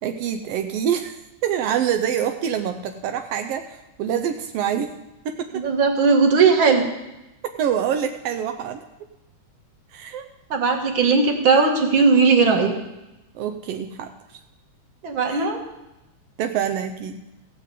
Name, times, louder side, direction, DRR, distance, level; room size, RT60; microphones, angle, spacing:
voice 1, 0.0-4.9 5.2-5.6 7.4-8.8 9.9-10.3 13.3-14.1 15.3-15.5 16.4-17.2, right 9 dB, 80° right, 6 dB, 1.4 m, -26 dB
voice 2, 5.5-6.9 10.5-12.7 15.0-15.6, right 4 dB, 45° right, 1 dB, 2.1 m, -18 dB
16.0 x 5.3 x 8.2 m, 0.96 s
omnidirectional pair, 3.5 m